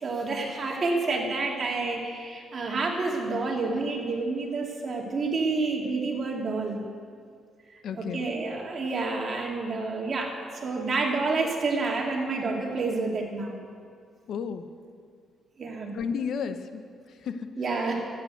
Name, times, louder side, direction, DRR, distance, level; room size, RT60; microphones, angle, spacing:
voice 1, 0.0-6.8 8.0-13.6 15.6-15.9 17.6-18.1, right 3 dB, 45° right, 0 dB, 2.6 m, -29 dB
voice 2, 7.8-8.3 14.3-14.7 15.9-17.5, left 6 dB, 65° left, 9 dB, 0.8 m, -33 dB
13.0 x 8.8 x 8.0 m, 2.1 s
cardioid pair, 90°, 0 cm